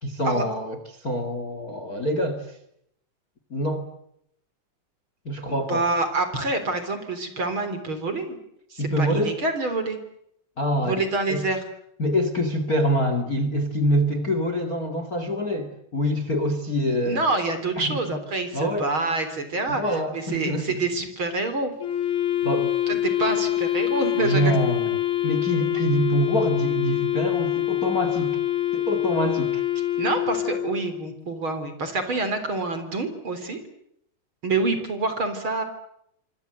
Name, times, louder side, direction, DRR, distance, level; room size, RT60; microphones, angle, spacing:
voice 1, 0.0-2.6 3.5-3.9 5.2-5.8 8.8-9.4 10.6-11.0 11.3-11.4 12.0-17.2 17.8-18.2 18.5-18.9 19.7-20.7 22.4-22.8 24.2-25.0 25.2-28.4 28.7-29.6, equal, 30° left, 9 dB, 2.2 m, -25 dB
voice 2, 5.5-8.4 8.7-10.0 10.8-11.6 17.0-21.7 22.9-24.6 30.0-33.6 34.4-35.6, right 3 dB, 35° right, 9 dB, 4.2 m, -27 dB
Wind instrument woodwind instrument, 21.8-31.1, left 13 dB, 55° left, 3.8 m, -25 dB
27.5 x 25.0 x 7.9 m, 0.74 s
omnidirectional pair, 4.0 m